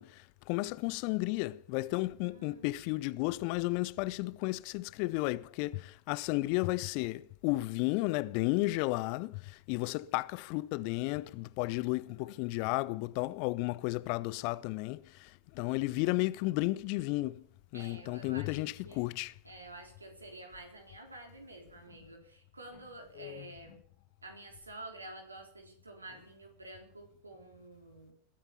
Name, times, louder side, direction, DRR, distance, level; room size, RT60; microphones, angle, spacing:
voice 1, 0.0-17.5 17.7-19.3 23.2-23.5, left 21 dB, 45° left, 0.6 m, -33 dB
voice 2, 2.2-2.8 11.8-12.8 17.7-19.0 19.4-23.8 24.2-28.1, right 2 dB, 80° right, 4.0 m, -50 dB
20.5 x 9.1 x 7.0 m
figure-of-eight pair, 90°, 0 cm